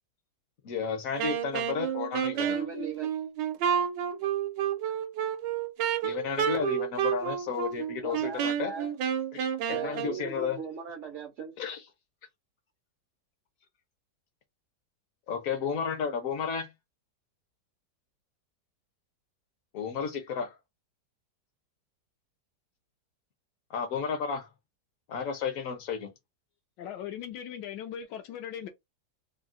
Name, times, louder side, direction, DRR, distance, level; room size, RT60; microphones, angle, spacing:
voice 1, 0.6-2.6 6.0-8.7 9.3-10.6 11.6-11.8 15.3-16.7 19.7-20.6 23.7-24.5 25.1-26.1, left 6 dB, 65° left, 0.9 m, -32 dB
Wind instrument woodwind instrument, 1.2-10.2, right 9 dB, 90° right, 1.3 m, -30 dB
voice 2, 2.3-3.1 8.0-8.9 9.7-11.6, right 5 dB, 70° right, 0.7 m, -39 dB
voice 3, 26.8-28.7, left 9 dB, 80° left, 1.2 m, -39 dB
3.7 x 2.0 x 2.4 m
omnidirectional pair, 1.9 m